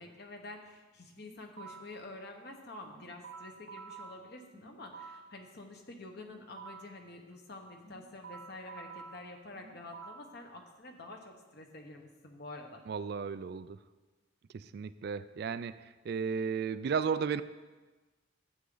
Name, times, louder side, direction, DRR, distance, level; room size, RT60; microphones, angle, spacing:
voice 1, 0.0-12.8, left 2 dB, 55° left, 3 dB, 1.2 m, -48 dB
sound 1, 1.2-2.0 2.8-5.4 6.2-7.0 7.8-10.4, right 5 dB, 75° right, 1.1 m, -50 dB
voice 2, 12.9-13.8 14.5-17.4, right 6 dB, 55° right, 14 dB, 0.3 m, -34 dB
11.5 x 8.3 x 3.9 m, 1.3 s
head